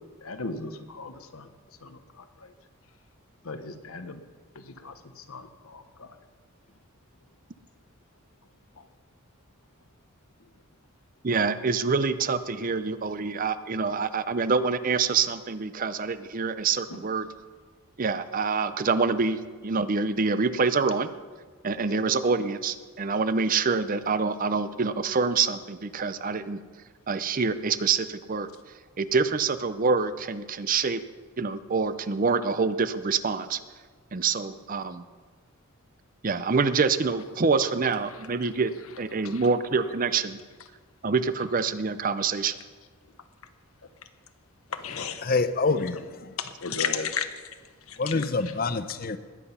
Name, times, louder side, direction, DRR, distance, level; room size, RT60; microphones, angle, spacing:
voice 1, 0.2-1.5 1.8-2.0 2.4-2.5 3.4-4.2 4.5-6.1 16.9-17.0 39.2-39.4 44.8-45.2 46.4-47.3 47.9-48.3, left 6 dB, 80° left, 1.1 m, -34 dB
voice 2, 11.2-17.3 18.0-21.1 21.6-26.6 27.1-28.5 29.0-31.0 31.4-33.6 34.1-35.0 36.2-38.7 39.0-40.4 41.0-42.6, right 4 dB, 40° right, 0.6 m, -26 dB
voice 3, 45.2-46.3 48.0-49.2, left 3 dB, 45° left, 0.7 m, -26 dB
20.0 x 7.9 x 5.6 m
head